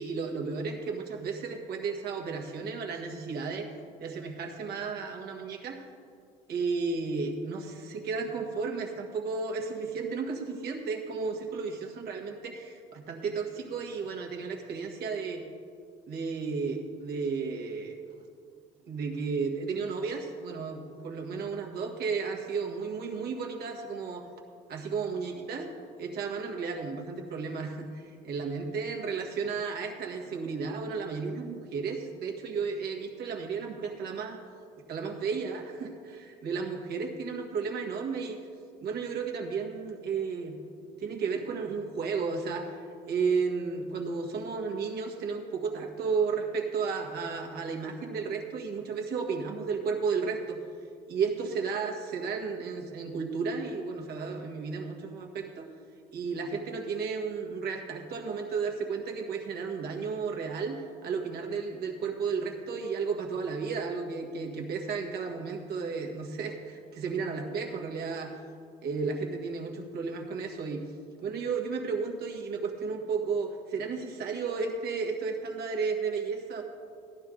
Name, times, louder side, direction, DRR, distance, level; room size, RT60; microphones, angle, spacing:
voice 1, 0.0-3.7 4.0-5.8 6.5-15.4 16.1-17.9 18.9-24.3 24.7-25.7 26.0-34.4 34.9-38.4 38.8-40.6 41.0-50.6 51.1-55.7 56.1-68.4 68.8-70.8 71.2-76.6, right 5 dB, 70° right, 1 dB, 1.7 m, -33 dB
14.5 x 10.5 x 3.8 m, 2.3 s
cardioid pair, 110°, 17 cm